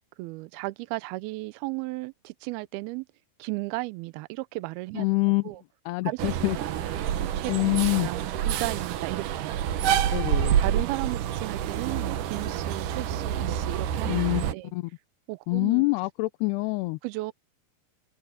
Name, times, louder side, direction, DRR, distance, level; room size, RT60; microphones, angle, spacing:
voice 1, 0.2-3.1 3.4-5.1 5.4-5.6 6.0-7.7 8.0-9.5 10.6-14.7 15.3-15.9 17.0-17.3, right 22 dB, 90° right, 2.2 m, -35 dB
voice 2, 4.9-5.5 5.9-6.6 7.5-8.1 10.1-10.6 14.1-14.5 14.7-14.9 15.5-17.0, left 24 dB, 80° left, 2.4 m, -25 dB
sound 1, 6.2-14.5, right 10 dB, 75° right, 1.9 m, -28 dB
omnidirectional pair, 5.2 m